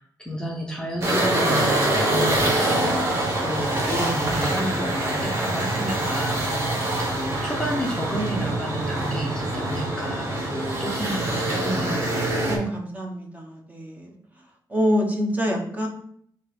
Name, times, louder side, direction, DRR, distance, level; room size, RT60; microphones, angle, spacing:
voice 1, 0.0-6.5 7.1-12.1, equal, 10° left, -1 dB, 0.6 m, -31 dB
sound 1, 1.0-12.6, right 1 dB, 35° right, 1.2 m, -25 dB
voice 2, 12.5-14.1 14.7-15.9, equal, 20° right, 1 dB, 0.9 m, -26 dB
3.7 x 2.8 x 4.7 m, 0.64 s
wide cardioid pair, 135°, 8 cm